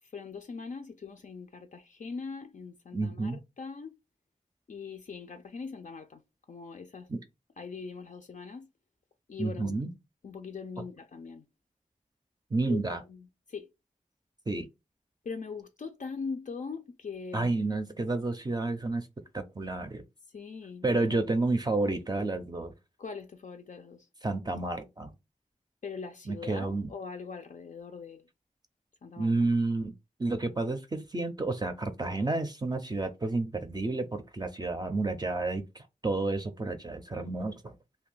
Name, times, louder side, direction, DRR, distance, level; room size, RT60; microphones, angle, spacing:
voice 1, 0.0-4.0 4.7-6.2 6.5-7.1 7.6-8.7 9.3-9.8 10.2-11.5 12.7-13.7 15.2-17.7 20.3-21.1 23.0-24.1 25.8-28.3 29.0-29.3, left 5 dB, 70° left, 0.4 m, -41 dB
voice 2, 2.9-3.4 7.1-7.2 9.4-9.9 12.5-13.0 14.5-14.7 17.3-19.1 19.3-20.0 20.8-22.7 24.2-25.1 26.3-26.9 29.2-29.9 30.2-37.7, right 2 dB, 30° right, 0.4 m, -30 dB
2.6 x 2.3 x 3.8 m
wide cardioid pair, 65°, 14 cm